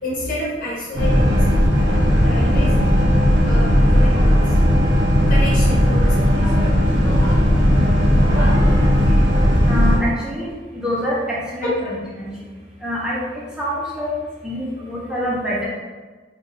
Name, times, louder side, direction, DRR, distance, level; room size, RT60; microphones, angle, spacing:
voice 1, 0.0-2.8 3.4-4.6 5.3-6.5 11.6-11.8, left 1 dB, 45° left, -6 dB, 1.3 m, -29 dB
Boat Water vehicle, 0.9-10.0, equal, 70° right, 1.0 m, -16 dB
voice 2, 9.7-10.5 10.7-12.3 12.8-13.2 13.6-14.2 14.4-15.7, equal, 5° right, -7 dB, 0.8 m, -26 dB
3.4 x 2.6 x 4.0 m, 1.4 s
head